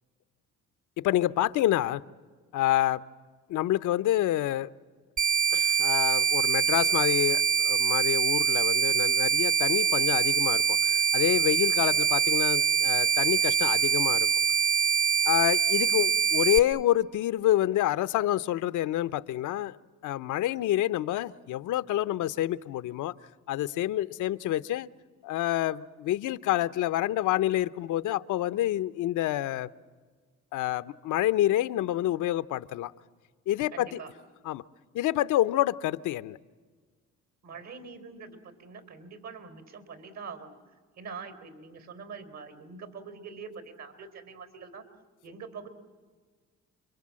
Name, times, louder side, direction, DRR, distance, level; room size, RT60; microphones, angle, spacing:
voice 1, 1.0-2.0 2.5-3.0 3.5-4.7 5.5-14.3 15.3-19.7 20.0-23.1 23.5-24.9 25.2-29.7 30.5-32.9 33.5-34.0 34.5-34.6 34.9-36.4, left 13 dB, 85° left, 14 dB, 0.8 m, -27 dB
sound 1, 5.2-16.6, right 7 dB, 25° right, 0.9 m, -24 dB
voice 2, 33.7-34.1 37.4-40.6 41.0-44.8 45.2-45.7, right 5 dB, 65° right, 9 dB, 4.0 m, -44 dB
29.5 x 24.0 x 7.6 m, 1.5 s
cardioid pair, 90°, 30 cm